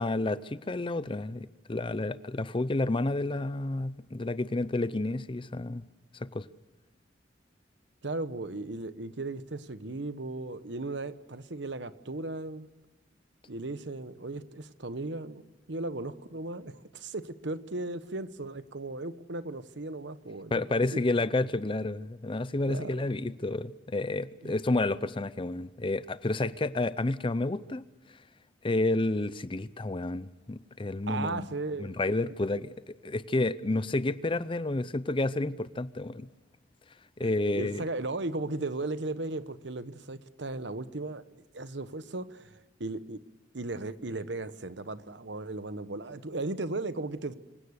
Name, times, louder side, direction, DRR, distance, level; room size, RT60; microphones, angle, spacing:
voice 1, 0.0-5.8 6.2-6.5 20.5-27.9 28.6-31.5 31.8-36.3 37.2-37.8, left 2 dB, 25° left, 0.6 m, -30 dB
voice 2, 8.0-12.7 13.5-15.4 15.7-20.6 20.9-21.0 22.7-23.0 24.4-24.5 31.1-32.0 37.2-37.3 37.5-41.2 41.5-43.2 43.5-47.3, right 2 dB, 65° right, 1.1 m, -36 dB
25.5 x 16.5 x 6.6 m
head